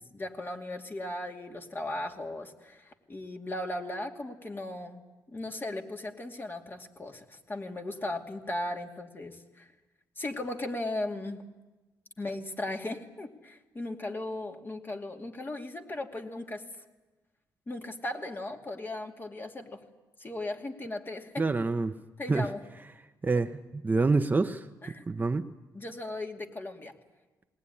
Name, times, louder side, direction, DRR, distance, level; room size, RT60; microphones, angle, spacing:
voice 1, 0.1-5.0 5.3-9.7 10.2-11.4 12.2-16.6 17.7-19.8 20.2-21.4 22.2-22.6 24.8-25.1 25.7-26.9, left 2 dB, 30° left, 3 dB, 2.5 m, -37 dB
voice 2, 21.4-22.0 22.3-22.5 23.2-24.7 25.1-25.5, right 3 dB, 25° right, 8 dB, 0.8 m, -27 dB
19.5 x 19.0 x 9.9 m, 1.2 s
cardioid pair, 80°, 7 cm